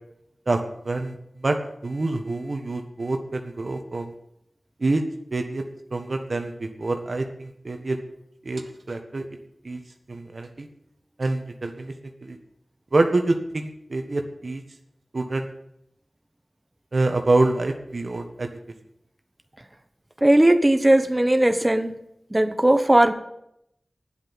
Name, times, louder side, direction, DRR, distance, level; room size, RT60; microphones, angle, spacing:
voice 1, 0.8-1.1 1.4-1.6 1.8-4.1 4.8-5.0 5.3-5.6 5.9-8.0 8.4-8.6 8.9-9.2 9.6-9.8 10.1-10.7 11.2-11.9 12.2-12.4 12.9-14.6 15.1-15.5 16.9-18.5, right 2 dB, 65° right, 5 dB, 1.4 m, -26 dB
voice 2, 20.2-21.9 22.3-23.1, right 1 dB, 20° right, 8 dB, 1.2 m, -18 dB
9.4 x 8.0 x 9.4 m, 0.78 s
cardioid pair, 45°, 0 cm